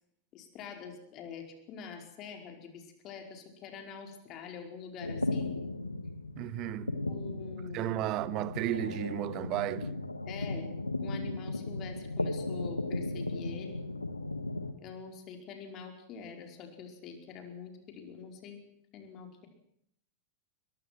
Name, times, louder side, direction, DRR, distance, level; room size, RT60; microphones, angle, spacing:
voice 1, 0.3-5.6 7.1-7.9 10.2-10.6 11.0-13.8 14.8-18.6 18.9-19.5, left 6 dB, 35° left, 5.0 m, -45 dB
sound 1, 5.0-14.7, left 2 dB, 85° left, 1.4 m, -36 dB
voice 2, 6.4-7.0 7.7-9.9, right 15 dB, 40° right, 1.0 m, -33 dB
23.0 x 22.0 x 6.1 m
figure-of-eight pair, 90°, 0 cm